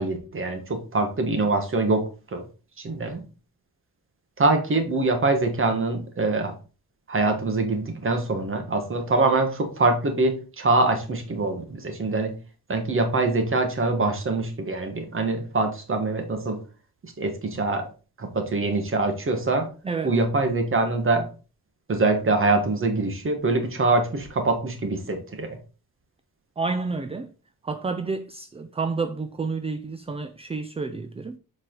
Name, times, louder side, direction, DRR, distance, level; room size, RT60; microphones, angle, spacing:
voice 1, 0.0-2.4 2.8-3.2 4.4-6.5 7.1-12.3 12.7-16.6 17.0-17.9 18.2-19.7 20.0-21.3 21.9-25.6, right 3 dB, 35° right, 1.4 m, -24 dB
voice 2, 19.8-20.2 26.6-27.3 27.6-31.4, right 4 dB, 20° right, 0.3 m, -30 dB
7.3 x 5.0 x 3.8 m
wide cardioid pair, 170°, 36 cm